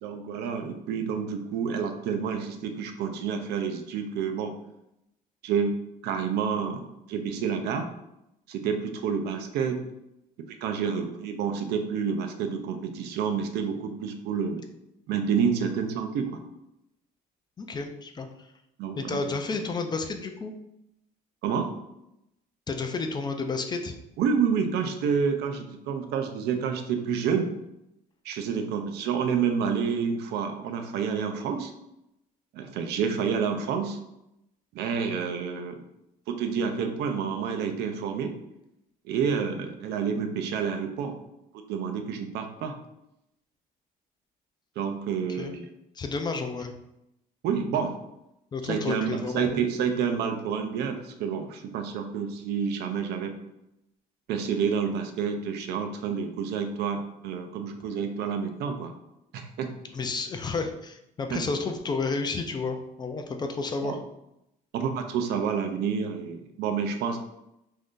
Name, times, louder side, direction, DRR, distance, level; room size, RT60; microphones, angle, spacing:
voice 1, 0.0-4.5 5.4-5.7 6.0-7.9 8.5-9.8 10.6-14.6 15.1-16.4 18.8-19.2 21.4-21.7 24.2-27.5 28.2-31.7 32.5-34.0 34.7-35.8 36.3-38.3 39.1-41.2 41.7-42.7 44.8-45.7 47.4-47.9 48.6-53.3 54.3-58.9 59.3-59.7 61.3-61.4 63.8-64.0 64.7-67.2, right 6 dB, 80° right, 6 dB, 0.5 m, -29 dB
voice 2, 17.6-18.3 19.0-20.5 22.7-23.9 45.3-45.5 46.0-46.7 48.5-49.6 59.9-64.0, left 4 dB, 25° left, 5 dB, 0.3 m, -31 dB
2.6 x 2.4 x 3.5 m, 0.84 s
cardioid pair, 110°, 17 cm